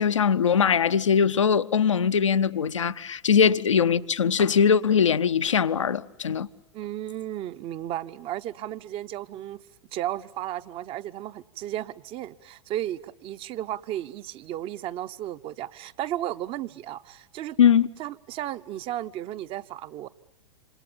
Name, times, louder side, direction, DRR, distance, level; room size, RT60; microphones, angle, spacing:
voice 1, 0.0-6.5 17.6-17.9, left 7 dB, 75° left, 0.9 m, -21 dB
voice 2, 6.7-9.6 9.9-17.6 18.0-20.1, right 13 dB, 35° right, 1.0 m, -34 dB
28.5 x 27.0 x 7.1 m
figure-of-eight pair, 95°, 16 cm